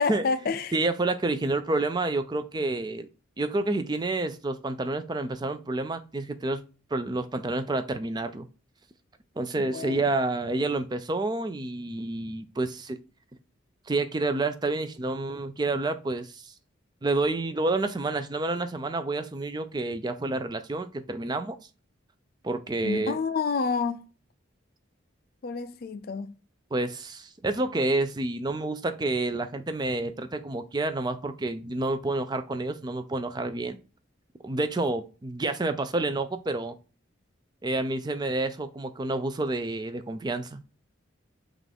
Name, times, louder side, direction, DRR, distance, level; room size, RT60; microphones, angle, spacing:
voice 1, 0.0-0.7 9.6-10.1 22.8-24.0 25.4-26.3, left 5 dB, 45° left, 0.4 m, -29 dB
voice 2, 0.7-3.1 3.4-6.6 6.9-8.5 9.4-13.0 13.9-16.5 17.0-21.6 22.4-23.2 26.7-33.8 34.4-36.7 37.6-40.6, right 2 dB, 20° right, 0.4 m, -29 dB
5.8 x 2.5 x 3.4 m
head